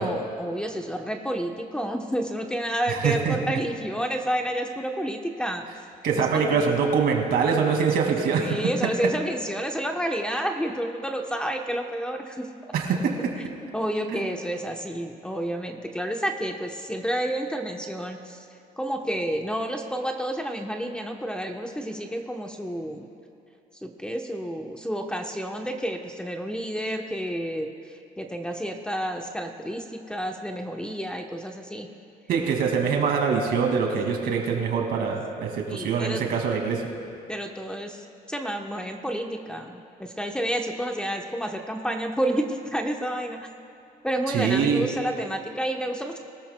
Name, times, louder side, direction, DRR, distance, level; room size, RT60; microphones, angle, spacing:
voice 1, 0.0-5.6 6.1-6.6 8.4-12.5 13.7-18.4 18.8-23.1 23.8-27.7 28.2-31.9 35.7-36.2 37.3-43.5 44.0-46.2, equal, 5° left, 3 dB, 0.9 m, -30 dB
voice 2, 3.0-3.6 6.0-8.5 12.7-13.1 14.1-14.2 32.3-36.8 44.3-44.8, right 6 dB, 65° right, 2 dB, 2.2 m, -24 dB
22.0 x 13.5 x 2.2 m, 2.8 s
cardioid pair, 110°, 17 cm